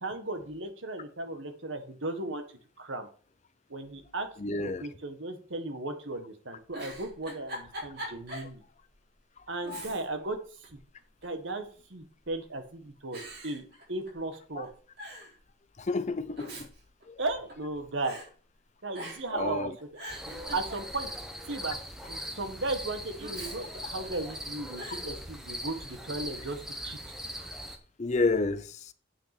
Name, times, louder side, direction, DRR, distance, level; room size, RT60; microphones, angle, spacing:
voice 1, 0.0-2.4 2.8-3.1 3.7-8.6 9.5-10.8 11.2-14.7 17.2-18.2 18.8-19.7 20.5-21.1 21.5-21.8 22.1-27.0, right 2 dB, 70° right, 1.6 m, -36 dB
voice 2, 4.4-4.8 9.7-9.8 14.6-14.7 15.8-16.7 17.1-17.2 19.3-19.7 28.0-28.9, left 3 dB, 35° left, 0.5 m, -30 dB
Giggle, 6.7-8.5 8.9-9.0 9.6-10.3 10.6-11.4 12.2-12.6 13.1-14.4 14.6-14.7 15.0-15.3 16.1-17.7 18.0-18.3 18.9-19.4 19.8-21.2 23.2-24.3 24.8-25.1, equal, 55° right, 3.8 m, -43 dB
sound 1, 20.1-27.8, equal, 5° right, 1.1 m, -40 dB
8.4 x 6.0 x 6.0 m
head